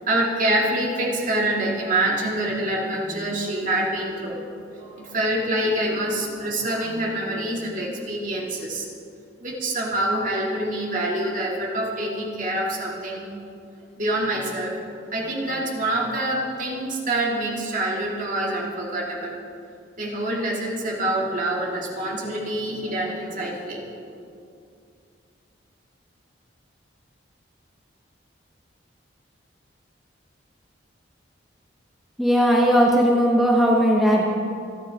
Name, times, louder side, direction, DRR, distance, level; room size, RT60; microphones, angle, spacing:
voice 1, 0.1-4.4 4.8-8.9 9.4-13.3 14.0-19.3 20.0-23.8, right 1 dB, 45° right, -3 dB, 2.6 m, -26 dB
voice 2, 32.2-34.2, equal, ahead, -3 dB, 1.1 m, -18 dB
27.5 x 10.5 x 3.7 m, 2.5 s
head